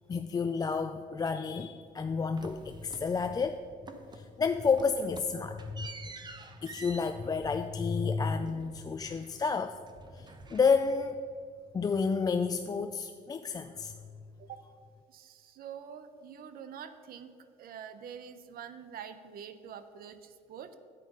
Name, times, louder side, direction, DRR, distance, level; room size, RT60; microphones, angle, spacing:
voice 1, 0.1-3.6 4.1-5.9 6.6-9.8 10.1-11.2 11.7-13.9, left 5 dB, 20° left, 8 dB, 0.4 m, -30 dB
sound 1, 2.4-3.6 3.9-4.3 4.6-9.6 9.9-11.2, right 3 dB, 25° right, 0.9 m, -49 dB
voice 2, 15.1-17.3 17.6-20.7, right 8 dB, 60° right, 11 dB, 0.7 m, -46 dB
9.7 x 8.4 x 5.4 m, 2.2 s
cardioid pair, 110°, 17 cm